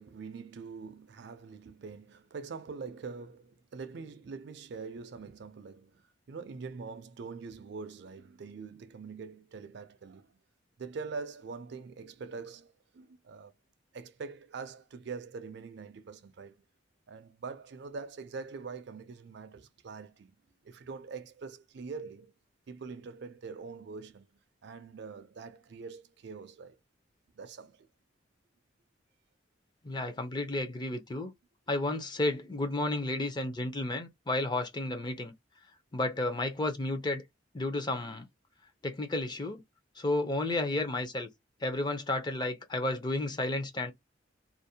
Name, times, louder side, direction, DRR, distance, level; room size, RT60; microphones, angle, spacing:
voice 1, 0.0-10.4 10.8-13.5 13.9-16.6 17.1-20.3 20.6-22.3 22.7-24.3 24.6-26.8 27.3-27.9, right 4 dB, 60° right, 0.4 m, -44 dB
voice 2, 29.8-31.3 31.7-35.3 35.9-37.2 37.5-38.3 38.8-39.6 40.0-41.3 41.6-43.9, left 2 dB, 25° left, 0.5 m, -32 dB
2.5 x 2.0 x 2.7 m
head